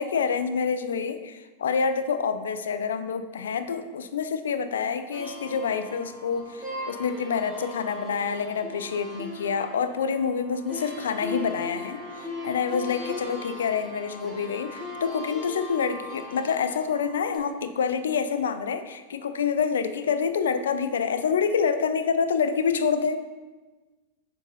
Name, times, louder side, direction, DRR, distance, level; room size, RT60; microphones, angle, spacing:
voice 1, 0.0-23.2, left 6 dB, 65° left, 10 dB, 0.4 m, -27 dB
sound 1, 5.1-17.4, left 1 dB, 5° right, 1.3 m, -38 dB
7.1 x 2.7 x 5.4 m, 1.3 s
figure-of-eight pair, 90°, 0 cm